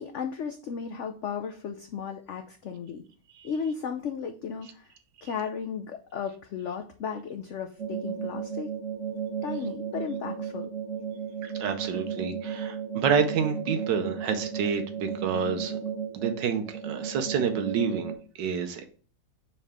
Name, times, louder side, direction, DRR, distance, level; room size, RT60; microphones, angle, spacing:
voice 1, 0.0-3.0 3.4-4.9 5.2-8.7 9.4-10.7, left 6 dB, 80° left, 5 dB, 0.6 m, -35 dB
sound 1, 7.8-18.2, right 7 dB, 50° right, 1.1 m, -34 dB
voice 2, 11.4-15.8 16.1-18.1 18.4-18.8, right 6 dB, 80° right, 7 dB, 1.4 m, -28 dB
5.5 x 4.8 x 3.5 m, 0.42 s
omnidirectional pair, 1.9 m